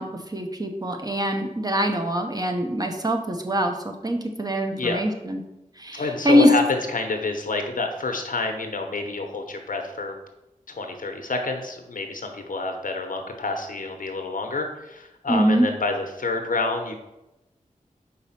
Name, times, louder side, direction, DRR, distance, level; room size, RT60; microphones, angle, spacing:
voice 1, 0.0-5.4 5.8-6.5 15.3-15.7, equal, 30° right, 3 dB, 0.9 m, -23 dB
voice 2, 4.7-5.0 5.9-10.1 10.7-16.9, left 3 dB, 90° left, 5 dB, 0.9 m, -28 dB
4.9 x 4.1 x 5.7 m, 0.93 s
wide cardioid pair, 75°, 14 cm